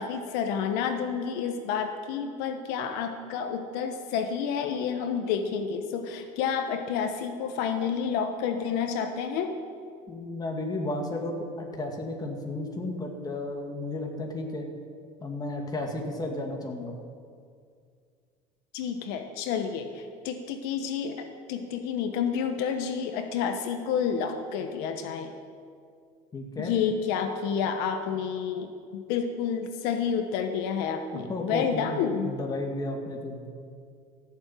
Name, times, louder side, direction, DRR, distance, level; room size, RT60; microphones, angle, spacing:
voice 1, 0.0-9.5 18.7-25.3 26.6-32.4, left 7 dB, 80° left, 7 dB, 1.2 m, -30 dB
voice 2, 10.1-14.7 15.2-16.9 26.3-26.7 31.1-33.5, left 2 dB, 25° left, 2 dB, 2.2 m, -33 dB
15.0 x 7.3 x 9.2 m, 2.2 s
cardioid pair, 120°, 16 cm